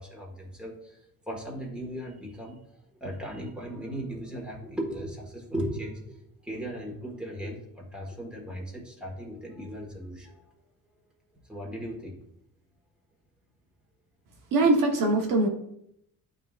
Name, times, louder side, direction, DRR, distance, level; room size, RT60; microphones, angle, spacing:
voice 1, 0.0-10.4 11.5-12.3, equal, 5° right, -2 dB, 1.6 m, -37 dB
voice 2, 14.5-15.5, right 2 dB, 65° right, 1 dB, 1.1 m, -22 dB
11.0 x 3.8 x 2.4 m, 0.75 s
cardioid pair, 140°, 35 cm